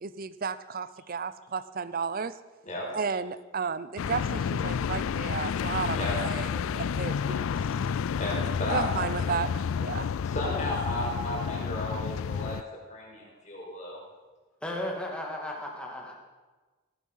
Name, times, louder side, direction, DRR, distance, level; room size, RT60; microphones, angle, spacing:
voice 1, 0.0-2.3 2.9-7.7 8.7-10.1, right 5 dB, 40° right, 15 dB, 0.6 m, -33 dB
sound 1, 4.0-12.6, left 7 dB, 70° left, 0.3 m, -30 dB
voice 2, 8.2-9.1 10.2-12.6 12.9-14.0, left 1 dB, 35° left, -3 dB, 5.2 m, -34 dB
voice 3, 14.6-16.1, left 1 dB, 5° left, -1 dB, 2.4 m, -35 dB
16.5 x 11.0 x 5.6 m, 1.3 s
head